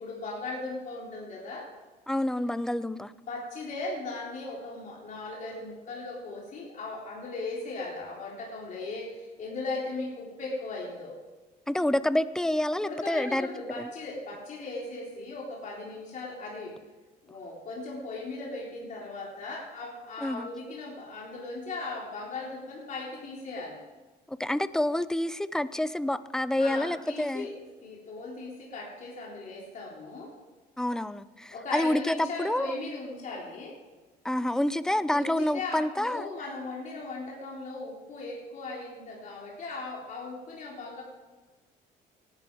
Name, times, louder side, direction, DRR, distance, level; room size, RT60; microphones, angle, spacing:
voice 1, 0.0-1.7 2.9-3.0 3.3-11.2 12.8-16.8 17.2-23.8 26.6-27.6 27.8-30.3 31.5-33.8 35.1-41.0, left 3 dB, 50° left, -3 dB, 3.6 m, -38 dB
voice 2, 2.1-3.1 11.7-13.5 13.8-13.9 20.2-20.5 24.3-27.5 30.8-32.7 34.2-36.3, left 1 dB, 5° left, 15 dB, 0.6 m, -28 dB
18.0 x 11.5 x 4.8 m, 1.3 s
cardioid pair, 110°, 17 cm